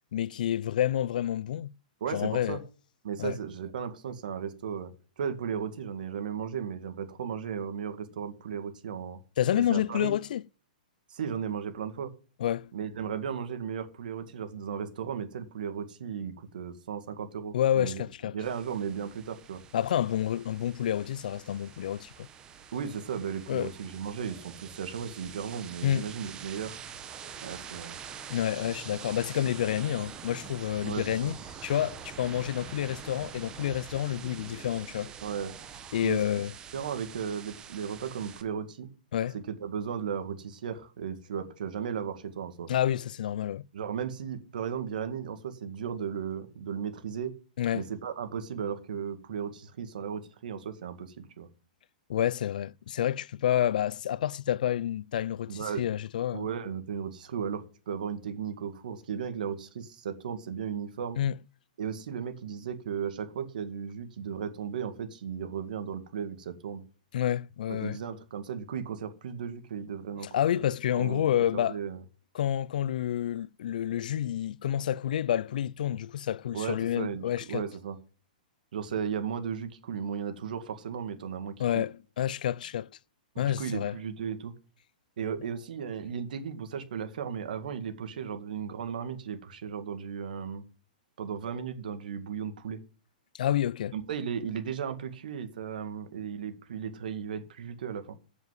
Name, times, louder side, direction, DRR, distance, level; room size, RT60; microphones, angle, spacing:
voice 1, 0.1-1.7 2.1-2.6 3.2-3.4 9.4-10.4 12.4-12.7 17.5-18.4 19.7-22.3 23.5-23.7 25.8-26.1 28.3-35.1 35.9-36.5 39.1-39.3 42.7-43.6 47.6-47.8 52.1-56.5 61.2-61.3 67.1-68.0 70.3-71.8 72.3-77.6 81.6-82.9 83.4-84.0 93.3-93.9, left 11 dB, 65° left, 0.4 m, -29 dB
voice 2, 2.0-2.6 3.0-4.9 5.2-9.2 9.7-10.1 11.1-12.1 12.7-18.0 18.3-19.6 22.7-26.7 27.4-28.0 30.8-31.4 35.2-35.5 36.0-36.2 36.7-38.9 39.3-42.7 43.7-47.3 47.7-51.5 55.5-55.8 56.3-61.2 61.8-66.8 67.7-70.3 70.9-72.0 76.5-78.0 78.7-81.9 83.3-84.5 85.2-90.6 91.2-92.8 93.9-98.2, right 7 dB, 70° right, 2.1 m, -35 dB
sound 1, 18.4-38.4, right 7 dB, 15° right, 1.0 m, -45 dB
8.2 x 7.1 x 7.7 m
hypercardioid pair, 160°, 5 cm